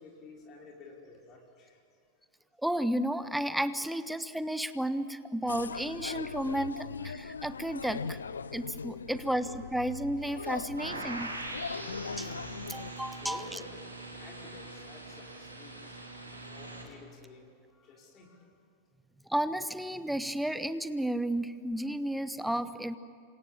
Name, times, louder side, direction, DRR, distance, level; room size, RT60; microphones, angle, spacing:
voice 1, 0.0-1.8 9.1-9.5 13.2-13.7 14.2-18.5, left 3 dB, 30° left, -2 dB, 5.5 m, -52 dB
voice 2, 2.6-8.2 8.5-11.3 11.8-12.3 12.7-13.4 19.3-23.0, right 1 dB, ahead, 13 dB, 1.1 m, -32 dB
sound 1, 5.5-12.9, left 5 dB, 75° left, 0.6 m, -40 dB
sound 2, 10.8-16.8, right 2 dB, 80° right, 4.3 m, -42 dB
28.0 x 26.5 x 7.5 m, 2.5 s
figure-of-eight pair, 90°, 0 cm